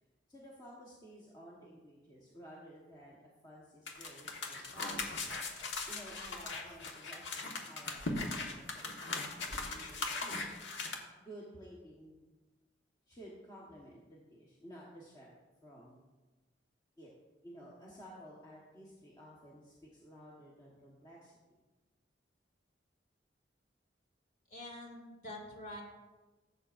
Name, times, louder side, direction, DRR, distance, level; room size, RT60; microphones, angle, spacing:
voice 1, 0.3-5.3 5.9-10.6 11.2-12.2 13.1-15.3 15.6-16.0 17.0-17.1 17.4-21.3, equal, 20° left, -5 dB, 1.2 m, -54 dB
sound 1, 3.9-10.9, left 3 dB, 80° left, 1.4 m, -39 dB
voice 2, 24.5-25.8, left 1 dB, 45° left, -1 dB, 2.6 m, -46 dB
15.5 x 7.9 x 2.5 m, 1.2 s
head